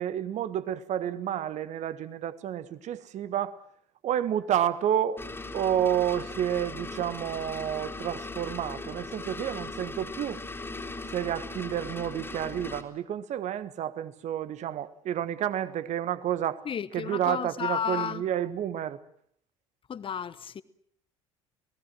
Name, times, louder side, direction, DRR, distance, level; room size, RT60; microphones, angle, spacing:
voice 1, 0.0-3.6 4.0-5.2 5.5-10.4 11.1-16.6 16.9-19.0, right 10 dB, 45° right, 1.6 m, -30 dB
sound 1, 5.2-12.8, left 2 dB, 15° left, 3.1 m, -39 dB
voice 2, 16.6-18.2 19.9-20.6, left 8 dB, 30° left, 1.2 m, -32 dB
27.0 x 19.0 x 7.8 m
figure-of-eight pair, 60°, 17 cm